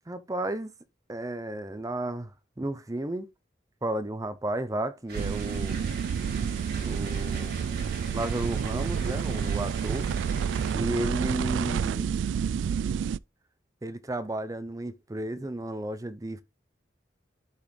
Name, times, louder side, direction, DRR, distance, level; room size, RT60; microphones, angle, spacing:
voice 1, 0.1-0.7 1.1-2.3 2.6-3.3 3.8-5.8 6.8-7.5 8.1-10.1 10.7-12.1 13.8-16.4, right 1 dB, 20° right, 0.6 m, -33 dB
sound 1, 5.1-10.8, right 3 dB, 60° right, 4.1 m, -42 dB
sound 2, 5.1-13.2, right 7 dB, 85° right, 0.3 m, -29 dB
12.0 x 4.1 x 3.2 m
head